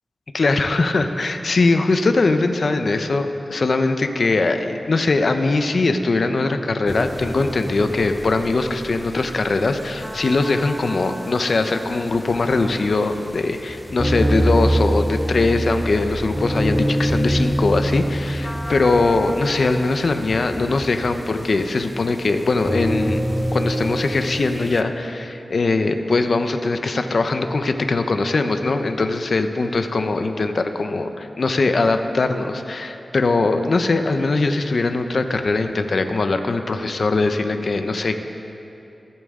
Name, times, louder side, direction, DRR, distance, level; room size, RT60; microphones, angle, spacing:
voice 1, 0.3-23.2 23.5-38.2, left 3 dB, 60° left, 7 dB, 0.8 m, -21 dB
sound 1, 6.9-24.8, equal, ahead, 0.6 m, -26 dB
24.5 x 8.7 x 3.8 m, 2.8 s
wide cardioid pair, 115°, 0 cm